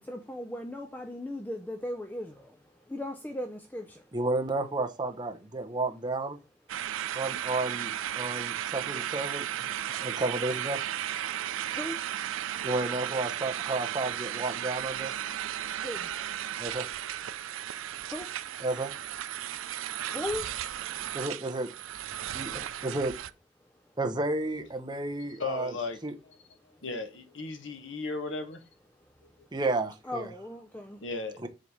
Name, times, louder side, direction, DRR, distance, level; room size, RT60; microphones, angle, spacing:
voice 1, 0.0-2.3 2.9-4.0 7.7-7.8 11.7-12.0 15.8-16.1 18.1-18.3 20.1-20.5 30.0-31.0, left 1 dB, 10° left, 0.5 m, -37 dB
voice 2, 4.1-6.4 7.1-9.5 10.0-10.8 12.6-15.1 16.6-16.9 18.6-18.9 21.1-21.7 22.3-23.1 24.0-25.7 26.0-26.1 29.5-30.3 31.4-31.5, right 2 dB, 20° right, 0.8 m, -32 dB
sound 1, 6.7-23.3, right 11 dB, 85° right, 0.4 m, -35 dB
voice 3, 24.9-26.0 26.8-28.6 31.0-31.4, left 3 dB, 70° left, 1.1 m, -36 dB
7.6 x 3.3 x 5.4 m
head